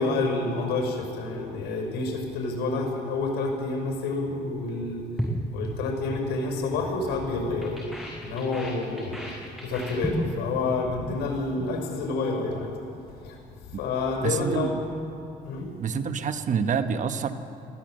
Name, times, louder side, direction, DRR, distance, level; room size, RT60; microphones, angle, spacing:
voice 1, 0.0-5.0 5.5-7.8 8.2-9.2 9.6-12.7 13.2-13.4 13.8-14.8 15.4-15.7, left 3 dB, 80° left, 1 dB, 5.8 m, -28 dB
sound 1, 5.2-6.3 6.6-6.9 7.2-10.5 10.8-11.1 11.4-11.8, equal, ahead, 6.4 m, -34 dB
voice 2, 14.2-14.8 15.8-17.3, right 6 dB, 50° right, 9 dB, 1.2 m, -27 dB
22.0 x 16.0 x 7.7 m, 2.8 s
cardioid pair, 110°, 17 cm